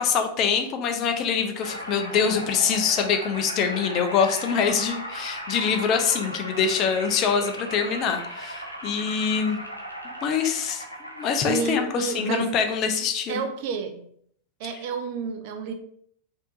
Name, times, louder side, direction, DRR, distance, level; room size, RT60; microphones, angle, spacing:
voice 1, 0.0-9.6 10.2-10.8 11.2-13.4, left 6 dB, 35° left, 6 dB, 0.5 m, -24 dB
sound 1, 1.6-12.9, equal, 85° left, 0.6 m, -37 dB
voice 2, 11.4-12.6 13.3-14.0 14.6-15.7, right 5 dB, 50° right, 6 dB, 0.5 m, -30 dB
4.3 x 2.7 x 2.4 m, 0.64 s
figure-of-eight pair, 90°, 0 cm